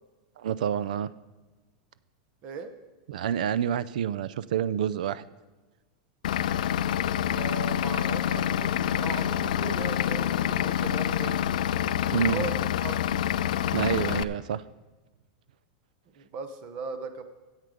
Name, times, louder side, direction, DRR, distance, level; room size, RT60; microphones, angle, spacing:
voice 1, 0.4-1.1 3.1-5.2 12.1-12.5 13.7-14.6, right 9 dB, 80° right, 18 dB, 0.4 m, -28 dB
Vehicle / Engine, 6.2-14.2, left 10 dB, 85° left, 0.4 m, -27 dB
voice 2, 7.2-11.4 12.0-12.9 16.2-17.2, right 5 dB, 30° right, 9 dB, 0.7 m, -38 dB
12.5 x 8.1 x 5.1 m, 1.2 s
supercardioid pair, 175°, 4 cm